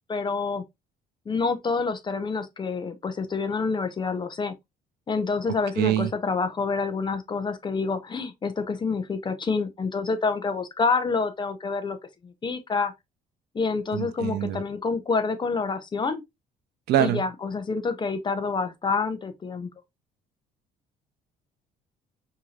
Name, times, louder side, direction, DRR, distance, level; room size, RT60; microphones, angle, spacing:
voice 1, 0.1-0.6 1.3-4.5 5.1-12.0 12.2-12.9 13.5-16.2 17.0-19.7, left 4 dB, 25° left, 0.7 m, -27 dB
voice 2, 5.8-6.1 13.9-14.6 16.9-17.2, right 11 dB, 75° right, 0.6 m, -24 dB
4.7 x 2.9 x 2.4 m
cardioid pair, 110°, 17 cm